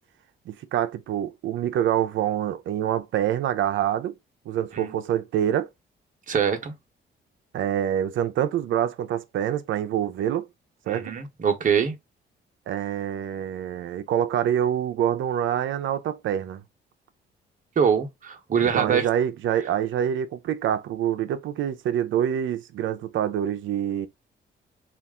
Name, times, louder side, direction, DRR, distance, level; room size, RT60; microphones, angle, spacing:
voice 1, 0.5-4.1 4.5-5.7 7.5-10.5 10.9-11.2 12.7-16.6 18.7-24.1, right 10 dB, 75° right, 0.6 m, -26 dB
voice 2, 6.3-6.7 10.9-11.9 17.8-19.1, right 7 dB, 40° right, 1.1 m, -23 dB
4.1 x 2.5 x 3.6 m
cardioid pair, 90°, 20 cm